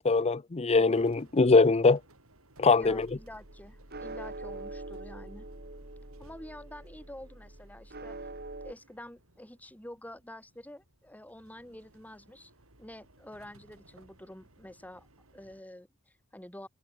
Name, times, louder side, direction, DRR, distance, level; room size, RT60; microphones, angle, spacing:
voice 1, 0.0-2.0 2.6-3.1, left 3 dB, 30° left, 0.6 m, -22 dB
sound 1, 0.9-15.6, right 2 dB, 90° right, 5.7 m, -61 dB
voice 2, 2.7-5.5 6.2-8.2 8.5-12.5 12.8-15.1 15.3-16.7, left 1 dB, 10° left, 3.5 m, -48 dB
sound 2, 2.8-8.7, right 2 dB, 50° right, 3.3 m, -44 dB
head